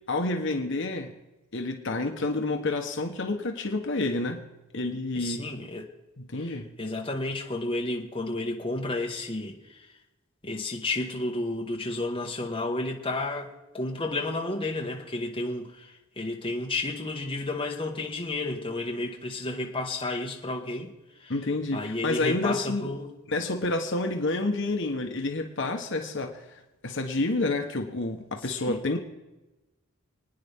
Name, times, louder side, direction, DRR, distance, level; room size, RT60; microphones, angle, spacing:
voice 1, 0.1-1.1 1.5-4.4 4.7-5.5 6.2-6.8 21.3-22.9 23.3-29.0, left 2 dB, 55° left, 4 dB, 1.2 m, -29 dB
voice 2, 5.1-5.8 6.3-9.9 10.4-21.3 21.7-23.1 28.6-28.8, left 2 dB, 25° left, 0 dB, 1.5 m, -32 dB
28.5 x 9.8 x 3.6 m, 1.1 s
head